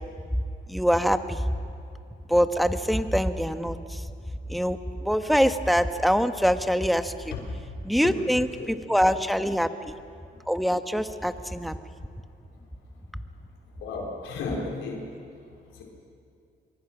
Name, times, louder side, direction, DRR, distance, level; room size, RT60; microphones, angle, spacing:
voice 1, 0.7-1.5 2.3-4.0 4.5-7.3 7.8-9.9 10.5-11.7, equal, ahead, 8 dB, 1.2 m, -24 dB
voice 2, 13.8-15.0 15.7-15.8, left 3 dB, 90° left, -2 dB, 4.4 m, -33 dB
25.0 x 22.5 x 6.1 m, 2.5 s
cardioid pair, 90°, 20 cm